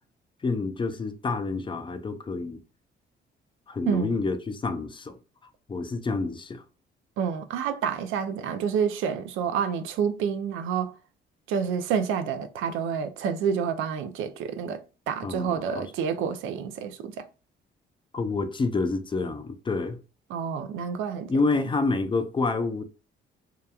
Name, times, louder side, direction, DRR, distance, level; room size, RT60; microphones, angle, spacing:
voice 1, 0.4-2.6 3.7-5.2 5.7-6.6 15.2-15.9 18.1-20.0 21.3-22.8, left 3 dB, 25° left, 0.4 m, -28 dB
voice 2, 3.9-4.2 7.2-10.9 11.5-17.3 20.3-21.3, right 7 dB, 90° right, 0.4 m, -28 dB
2.8 x 2.3 x 2.2 m
cardioid pair, 90°, 20 cm